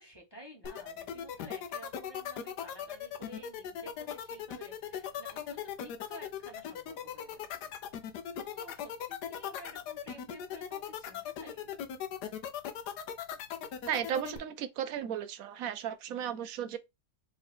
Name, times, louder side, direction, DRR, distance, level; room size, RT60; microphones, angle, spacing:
voice 1, 0.0-7.7 8.3-11.7, equal, 15° left, 1.1 m, -52 dB
sound 1, 0.6-14.4, left 9 dB, 75° left, 1.2 m, -38 dB
voice 2, 13.8-16.8, right 9 dB, 70° right, 0.9 m, -35 dB
3.8 x 3.1 x 4.3 m
omnidirectional pair, 1.8 m